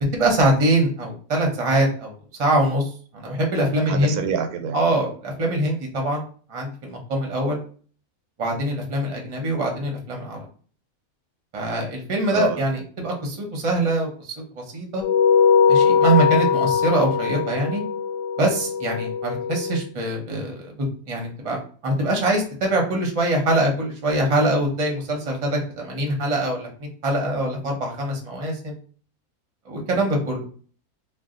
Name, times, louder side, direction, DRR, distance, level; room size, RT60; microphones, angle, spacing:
voice 1, 0.1-2.1 2.4-4.2 4.7-6.2 6.5-7.6 8.4-10.4 11.5-15.0 15.7-17.8 18.4-28.8 29.7-30.5, right 1 dB, 35° right, 1 dB, 0.6 m, -23 dB
voice 2, 3.9-4.8 12.3-12.6, right 7 dB, 90° right, 6 dB, 1.1 m, -26 dB
sound 1, 15.0-19.8, left 6 dB, 80° left, 1.1 m, -20 dB
2.6 x 2.3 x 3.7 m, 0.42 s
omnidirectional pair, 1.6 m